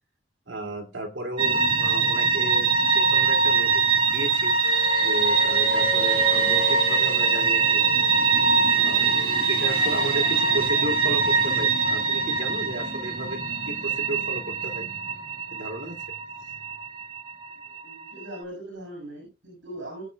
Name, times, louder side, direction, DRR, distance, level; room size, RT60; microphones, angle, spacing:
voice 1, 0.5-4.5 5.0-7.8 8.7-9.1 9.5-13.4 13.7-14.9 15.5-16.0, right 1 dB, 85° right, 2 dB, 2.7 m, -34 dB
sound 1, 1.4-18.4, right 4 dB, 25° right, 1.6 m, -23 dB
sound 2, 4.6-15.4, equal, 50° right, 6.8 m, -37 dB
voice 2, 17.6-20.0, right 1 dB, 70° right, 1 dB, 6.8 m, -40 dB
20.5 x 8.3 x 2.3 m, 0.27 s
head